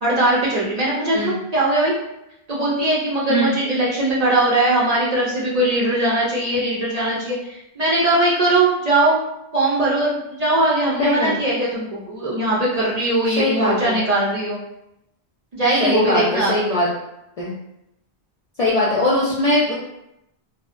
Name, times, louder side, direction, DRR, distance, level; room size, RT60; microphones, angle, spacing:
voice 1, 0.0-1.9 2.5-9.2 9.5-14.6 15.5-16.5, right 2 dB, 50° right, -6 dB, 0.5 m, -20 dB
voice 2, 11.0-11.3 13.4-14.0 15.8-16.9 17.4-17.5 18.6-19.7, left 1 dB, 55° left, -6 dB, 0.4 m, -20 dB
2.6 x 2.0 x 2.4 m, 0.83 s
omnidirectional pair, 1.1 m